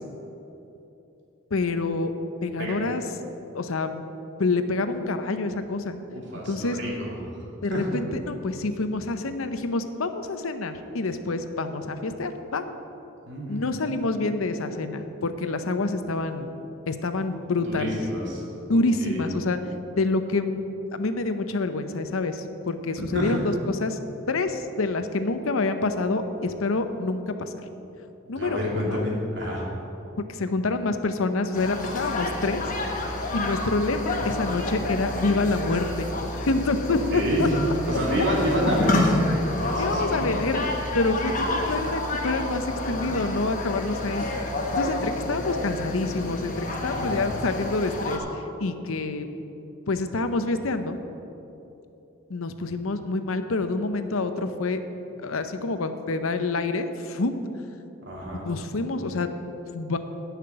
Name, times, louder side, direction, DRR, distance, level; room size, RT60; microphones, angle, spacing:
voice 1, 1.5-2.1 2.4-3.0 3.5-4.0 4.4-6.0 6.5-6.8 7.6-12.6 13.5-16.5 16.9-18.0 18.7-19.6 20.0-20.6 20.9-24.0 24.3-27.5 28.3-29.1 30.3-32.6 33.3-36.1 36.5-37.5 39.8-40.6 40.9-44.3 44.8-49.3 49.9-51.0 52.3-54.8 55.2-57.3 58.3-59.3 59.7-60.0, left 3 dB, 75° left, 9 dB, 0.7 m, -27 dB
voice 2, 6.1-7.4 7.7-7.9 13.3-13.7 17.6-18.4 18.7-19.3 23.0-23.3 28.3-29.7 36.9-37.5 37.9-40.0 41.3-41.4 46.7-47.2 58.1-58.4, equal, 55° right, -3 dB, 2.7 m, -29 dB
sound 1, 31.5-48.2, left 1 dB, 40° left, 1.2 m, -29 dB
10.5 x 5.9 x 8.8 m, 3.0 s
head